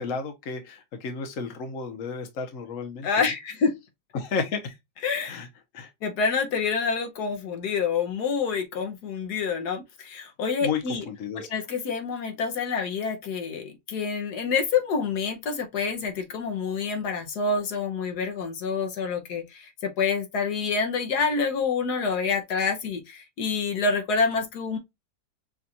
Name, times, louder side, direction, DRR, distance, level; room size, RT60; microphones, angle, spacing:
voice 1, 0.0-3.1 4.1-4.7 5.2-5.5 5.7-5.9 10.6-11.5, left 5 dB, 55° left, 1.3 m, -32 dB
voice 2, 3.0-3.7 5.0-5.4 6.0-11.0 11.3-24.8, left 5 dB, 75° left, 1.4 m, -27 dB
6.0 x 2.5 x 2.7 m
omnidirectional pair, 1.7 m